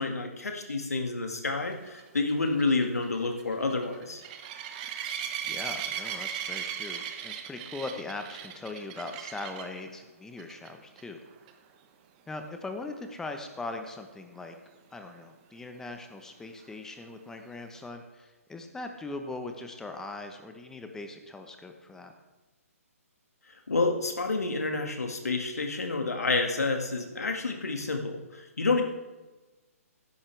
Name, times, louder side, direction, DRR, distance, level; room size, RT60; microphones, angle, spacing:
voice 1, 0.0-4.2 23.7-28.8, left 3 dB, 80° left, 4 dB, 2.0 m, -29 dB
sound 1, 1.9-9.8 10.4-10.7 11.0-11.1 11.5-11.6 15.1-15.2, right 9 dB, 30° right, 1.1 m, -37 dB
voice 2, 5.4-11.2 12.3-14.6 14.9-22.1, left 2 dB, 5° left, 5 dB, 1.0 m, -40 dB
15.5 x 10.5 x 3.4 m, 1.2 s
figure-of-eight pair, 135°, 8 cm